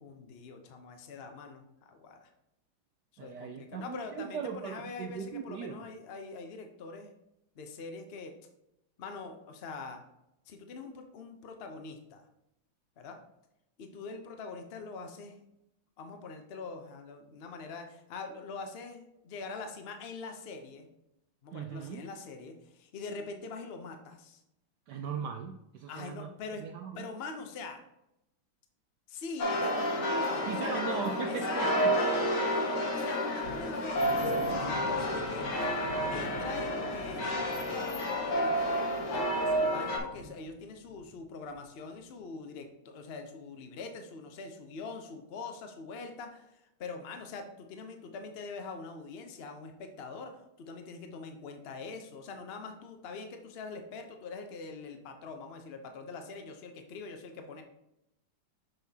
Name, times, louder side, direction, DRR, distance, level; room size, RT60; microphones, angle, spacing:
voice 1, 0.0-2.3 3.1-7.1 7.6-8.3 9.0-10.0 10.5-12.2 13.0-13.2 13.8-15.4 16.0-20.9 21.4-24.4 25.9-26.6 26.9-27.8 29.1-30.8 31.3-35.5 36.1-57.6, left 4 dB, 65° left, 5 dB, 0.6 m, -43 dB
voice 2, 3.2-5.9 21.5-22.0 24.9-26.3 26.6-27.1 30.4-31.9, right 7 dB, 80° right, 5 dB, 0.9 m, -38 dB
sound 1, 29.4-40.0, equal, 80° left, 2.1 m, -30 dB
sound 2, 33.4-41.2 41.4-41.6 42.0-42.1, left 1 dB, 30° left, 1.6 m, -46 dB
6.9 x 5.9 x 2.8 m, 0.85 s
omnidirectional pair, 2.3 m